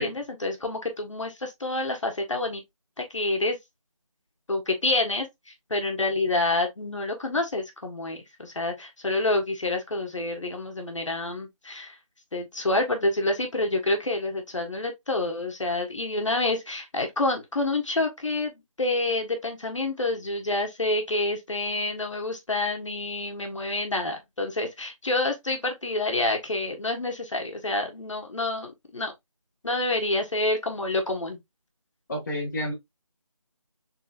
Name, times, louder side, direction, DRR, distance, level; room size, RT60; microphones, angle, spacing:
voice 1, 0.0-2.6 3.0-3.6 4.5-5.3 5.7-11.9 12.3-29.1 29.6-31.4, left 2 dB, 60° left, 1.6 m, -28 dB
voice 2, 32.1-32.7, left 1 dB, 30° left, 1.1 m, -29 dB
4.3 x 3.9 x 2.5 m
figure-of-eight pair, 170°, 18 cm